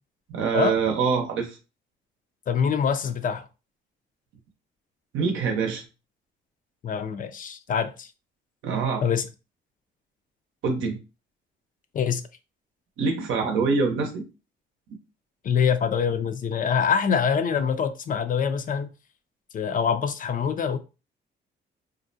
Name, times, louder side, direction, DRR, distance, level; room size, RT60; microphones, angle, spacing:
voice 1, 0.3-1.6 5.1-5.8 8.6-9.0 10.6-11.0 13.0-14.2, right 5 dB, 80° right, 0.7 m, -24 dB
voice 2, 2.5-3.5 6.8-8.1 9.0-9.3 11.9-12.2 15.4-18.9 19.5-20.8, left 7 dB, 45° left, 0.4 m, -24 dB
2.5 x 2.1 x 2.6 m
cardioid pair, 90°, 20 cm